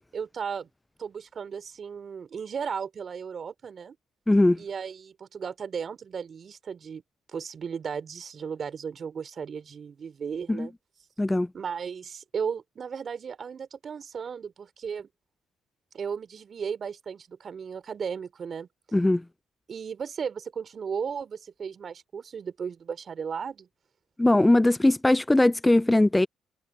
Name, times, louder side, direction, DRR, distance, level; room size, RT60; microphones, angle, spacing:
voice 1, 0.1-0.7 1.0-4.0 4.6-7.0 7.3-10.7 11.5-15.1 15.9-18.7 19.7-23.7, right 6 dB, 45° right, 3.4 m, -35 dB
voice 2, 4.3-4.6 10.5-10.7 11.2-11.5 18.9-19.2 24.2-26.3, left 1 dB, 10° left, 0.4 m, -20 dB
supercardioid pair, 70°, 0 cm